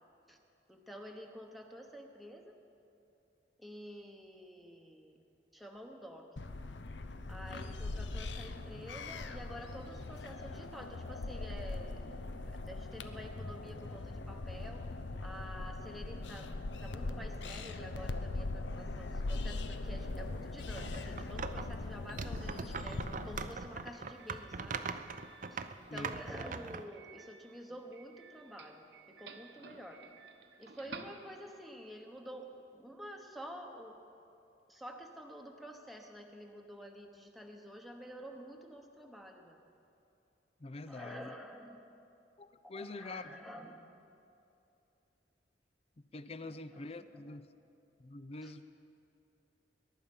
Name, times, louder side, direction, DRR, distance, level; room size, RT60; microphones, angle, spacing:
voice 1, 0.7-2.6 3.6-5.2 5.5-6.4 7.3-12.1 12.6-14.9 15.2-24.8 25.5-30.0 30.6-34.0 34.7-39.6 40.9-41.8 42.6-43.8 46.4-47.4 48.4-48.5, equal, ahead, 2 dB, 1.1 m, -49 dB
sound 1, 6.4-23.5, left 2 dB, 80° left, 0.7 m, -41 dB
sound 2, 20.8-21.7 22.1-26.8, right 5 dB, 45° right, 0.6 m, -41 dB
Doorbell, 22.7-31.8, right 4 dB, 70° right, 1.1 m, -55 dB
voice 2, 40.6-41.3 42.4-43.4 46.0-47.5 48.0-48.6, left 2 dB, 35° left, 13 dB, 0.5 m, -45 dB
22.0 x 11.0 x 5.4 m, 2.8 s
head